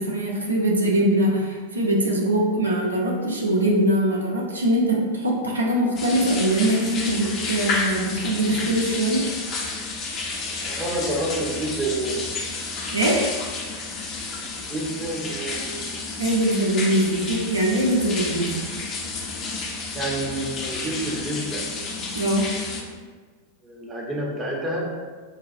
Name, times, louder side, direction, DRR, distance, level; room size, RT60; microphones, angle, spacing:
voice 1, 0.0-9.3 12.9-13.3 16.2-18.6 22.1-22.7, right 1 dB, 75° right, -2 dB, 0.5 m, -22 dB
sound 1, 6.0-22.8, left 3 dB, 30° left, 0.5 m, -31 dB
voice 2, 10.6-12.6 14.6-15.8 19.9-21.7 23.6-24.9, right 1 dB, 20° right, -1 dB, 0.6 m, -29 dB
4.6 x 2.3 x 2.5 m, 1.5 s
figure-of-eight pair, 90°, 0 cm